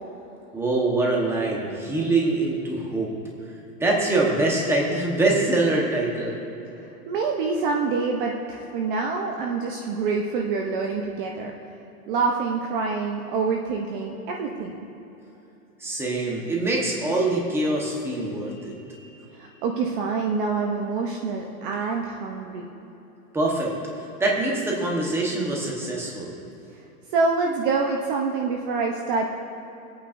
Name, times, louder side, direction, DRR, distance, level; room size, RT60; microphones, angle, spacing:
voice 1, 0.5-3.1 3.8-6.4 15.8-19.1 23.3-23.7 24.2-26.4, right 2 dB, 5° right, -2 dB, 1.2 m, -24 dB
voice 2, 6.7-11.5 12.1-14.8 19.3-22.7 27.1-29.3, right 4 dB, 35° right, 1 dB, 0.8 m, -26 dB
23.0 x 8.8 x 2.6 m, 3.0 s
hypercardioid pair, 150°, 46 cm